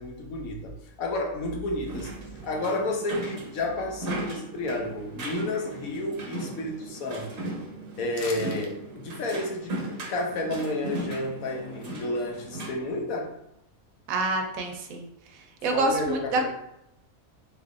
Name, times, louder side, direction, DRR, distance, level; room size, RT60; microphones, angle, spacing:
voice 1, 0.0-2.1 2.4-7.5 8.0-9.8 10.1-13.3 15.7-16.5, left 2 dB, 85° left, 1 dB, 1.2 m, -31 dB
sound 1, 1.9-12.7, right 1 dB, 50° right, 0.8 m, -37 dB
sound 2, 8.1-8.7 9.1-9.2, left 4 dB, 65° left, 0.6 m, -41 dB
voice 2, 14.1-15.1 15.6-16.5, right 2 dB, 80° right, 3 dB, 1.0 m, -27 dB
3.6 x 3.3 x 2.4 m, 0.81 s
omnidirectional pair, 1.5 m